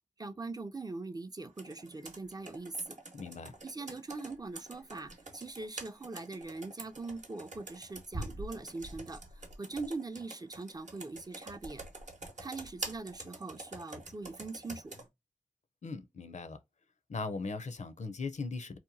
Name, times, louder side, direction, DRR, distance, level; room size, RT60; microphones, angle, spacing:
voice 1, 0.2-3.0 3.6-11.8 12.4-14.9, right 3 dB, 30° right, 0.4 m, -42 dB
Computer keyboard, 1.6-15.1, right 2 dB, 65° right, 0.8 m, -46 dB
voice 2, 3.1-3.6 15.8-16.6 17.1-18.8, left 4 dB, 60° left, 0.5 m, -39 dB
2.8 x 2.1 x 2.6 m
cardioid pair, 40°, 13 cm